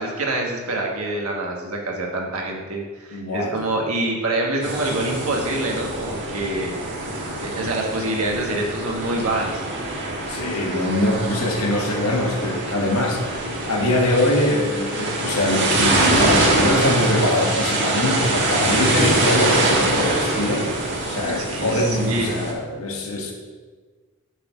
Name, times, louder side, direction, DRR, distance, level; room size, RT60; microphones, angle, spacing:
voice 1, 0.0-7.0 7.4-9.6 21.3-22.3, right 2 dB, 75° right, 0 dB, 1.4 m, -26 dB
voice 2, 3.1-3.8 10.3-23.3, left 1 dB, 75° left, 0 dB, 1.4 m, -23 dB
sound 1, 4.6-22.5, right 2 dB, 55° right, 1.3 m, -24 dB
7.0 x 4.2 x 6.1 m, 1.4 s
head